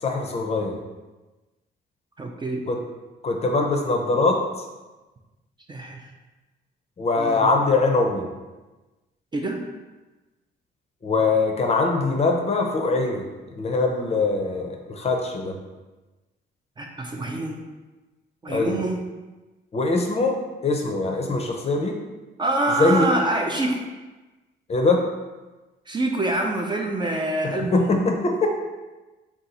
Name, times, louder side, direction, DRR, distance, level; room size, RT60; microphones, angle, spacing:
voice 1, 0.0-0.8 2.7-2.8 3.2-4.4 7.0-8.2 11.0-13.2 13.6-15.5 18.5-18.8 19.7-21.9 22.8-23.1 24.7-25.0 27.9-28.5, left 3 dB, 30° left, 2 dB, 0.5 m, -22 dB
voice 2, 2.2-2.7 5.7-6.1 7.2-7.5 9.3-9.6 16.8-17.6 18.4-19.0 22.4-23.8 25.9-28.0, right 2 dB, 25° right, 1 dB, 0.4 m, -26 dB
2.7 x 2.3 x 3.9 m, 1.2 s
cardioid pair, 90°, 20 cm